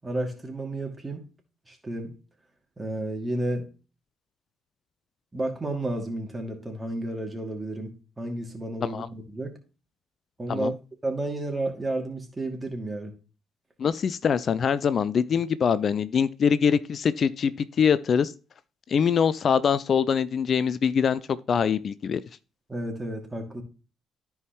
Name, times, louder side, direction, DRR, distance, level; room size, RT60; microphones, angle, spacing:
voice 1, 0.0-1.2 1.7-2.2 2.8-3.7 5.3-7.9 8.2-9.6 10.4-10.7 11.0-13.1 22.7-23.6, right 1 dB, 20° right, 2.6 m, -31 dB
voice 2, 13.8-17.5 17.8-18.3 18.9-21.2 21.5-22.2, left 7 dB, 45° left, 0.4 m, -23 dB
13.5 x 4.8 x 3.1 m
figure-of-eight pair, 45°, 0 cm